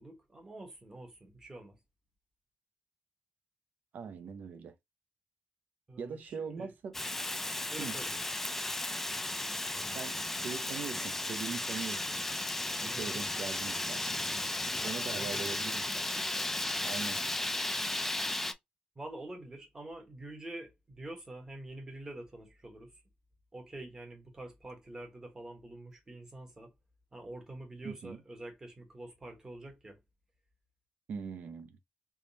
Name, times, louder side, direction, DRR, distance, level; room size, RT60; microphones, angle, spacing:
voice 1, 0.0-1.8 5.9-6.7 7.7-8.1 12.8-13.2 15.1-15.6 18.9-23.0 23.5-26.7 27.1-30.0, right 1 dB, 20° right, 1.1 m, -46 dB
voice 2, 3.9-4.7 6.0-6.9 7.8-8.0 9.9-12.1 12.8-14.0 14.8-16.5 16.8-17.2 27.8-28.2 31.1-31.8, right 6 dB, 60° right, 0.6 m, -41 dB
Fire, 6.9-18.5, left 2 dB, 10° left, 0.3 m, -35 dB
3.5 x 3.1 x 2.7 m
wide cardioid pair, 180°, 3 cm